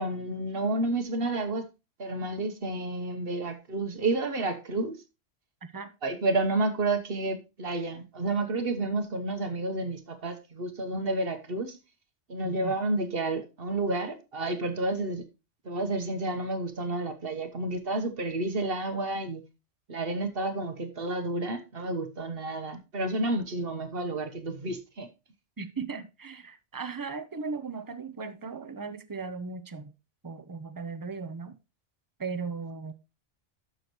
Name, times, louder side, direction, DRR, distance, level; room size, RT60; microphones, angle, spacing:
voice 1, 0.0-1.6 2.0-5.0 6.0-11.8 12.3-15.2 15.6-19.4 19.9-25.1, right 2 dB, 55° right, 1.3 m, -30 dB
voice 2, 5.6-5.9 12.4-12.8 25.6-29.9 30.2-31.6 32.2-32.9, right 4 dB, 20° right, 0.6 m, -37 dB
12.0 x 6.4 x 3.0 m
omnidirectional pair, 1.2 m